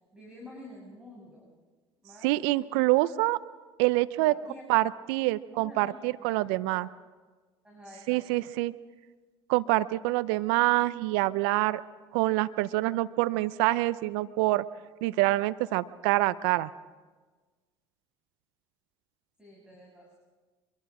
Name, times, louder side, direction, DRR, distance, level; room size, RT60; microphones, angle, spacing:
voice 1, 0.1-1.5 2.0-2.3 4.2-5.0 5.5-6.9 7.6-8.5 19.4-20.2, left 1 dB, 5° right, -3 dB, 6.7 m, -49 dB
voice 2, 2.2-3.4 3.8-4.4 4.7-6.9 8.1-8.7 9.5-11.8 12.1-14.6 15.0-16.7, right 19 dB, 70° right, 16 dB, 0.6 m, -26 dB
24.5 x 23.0 x 5.0 m, 1.3 s
hypercardioid pair, 65°, 14 cm